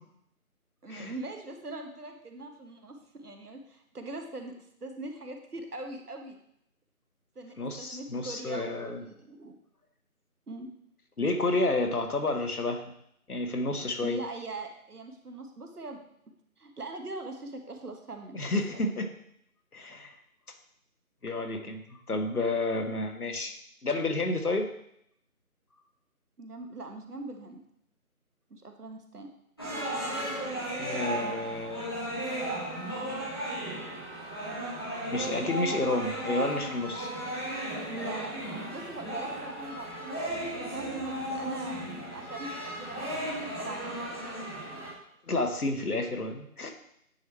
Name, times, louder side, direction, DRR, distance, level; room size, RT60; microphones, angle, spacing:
voice 1, 0.8-4.5 4.8-6.4 7.3-9.6 10.5-10.7 14.0-18.4 18.7-18.9 26.4-27.6 28.5-29.3 35.7-36.0 37.9-38.4 38.7-44.2, right 2 dB, 85° right, 4 dB, 1.3 m, -42 dB
voice 2, 7.6-9.0 11.2-12.9 13.3-14.2 18.3-19.1 19.7-20.1 21.2-23.5 23.8-24.7 29.9-30.5 30.8-31.9 35.0-37.1 43.2-43.4 45.3-46.7, left 2 dB, 80° left, 6 dB, 1.2 m, -30 dB
sound 1, 29.6-44.9, right 1 dB, 15° left, 1.1 m, -35 dB
9.2 x 3.2 x 4.3 m, 0.73 s
figure-of-eight pair, 165°, 44 cm